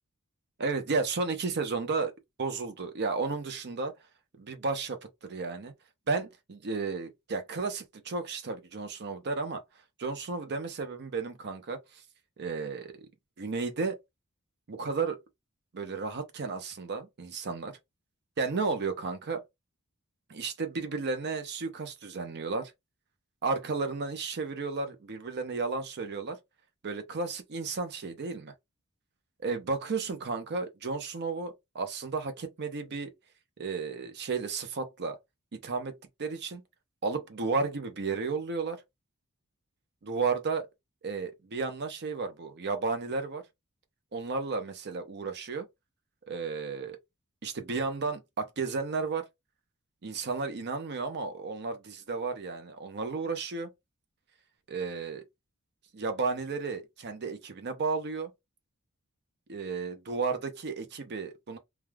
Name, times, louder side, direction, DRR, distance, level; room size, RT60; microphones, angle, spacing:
voice 1, 0.6-2.1 2.4-3.9 4.4-5.7 6.1-9.6 10.0-12.0 12.4-13.1 13.4-14.0 14.7-15.2 15.7-17.8 18.4-19.4 20.3-22.7 23.4-26.4 26.8-28.5 29.4-33.1 33.6-35.2 35.5-36.6 37.0-38.8 40.0-40.7 41.0-43.5 44.1-45.7 46.3-47.0 47.4-49.3 50.0-53.7 54.7-55.2 55.9-58.3 59.5-61.6, right 4 dB, 50° right, 0.6 m, -33 dB
3.3 x 2.3 x 2.2 m
head